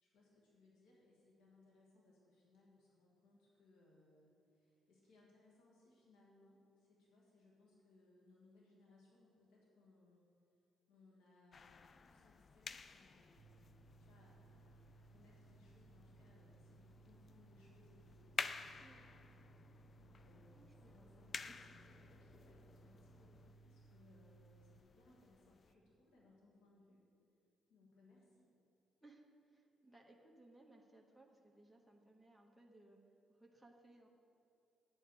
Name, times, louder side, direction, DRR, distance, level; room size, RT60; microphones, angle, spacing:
voice 1, 0.0-10.6 10.9-18.9 19.4-27.0 27.7-28.5, left 2 dB, 90° left, -4 dB, 1.8 m, -69 dB
sound 1, 11.5-25.7, left 5 dB, 40° left, 0.4 m, -52 dB
sound 2, 13.4-24.8, right 4 dB, 75° right, 0.8 m, -64 dB
voice 2, 20.5-21.1 21.5-21.6 29.0-33.0 33.3-34.1, right 2 dB, ahead, -2 dB, 1.1 m, -64 dB
9.8 x 8.0 x 4.8 m, 2.6 s
cardioid pair, 90°, 0 cm